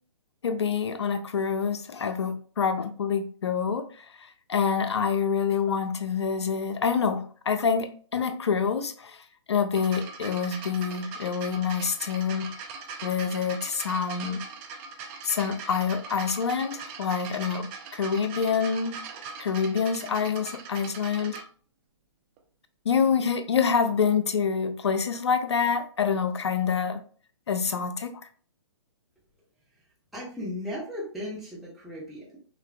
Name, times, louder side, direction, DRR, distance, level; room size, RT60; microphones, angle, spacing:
voice 1, 0.4-3.9 4.5-9.2 9.5-12.5 13.0-14.4 15.2-19.0 19.4-21.4 22.9-27.0 27.5-28.1, left 6 dB, 65° left, 0.5 m, -26 dB
sound 1, 9.7-21.4 22.4-22.5, right 5 dB, 25° right, 0.5 m, -41 dB
voice 2, 30.1-32.4, left 1 dB, ahead, 1.0 m, -36 dB
5.6 x 2.3 x 2.3 m
figure-of-eight pair, 125°, 16 cm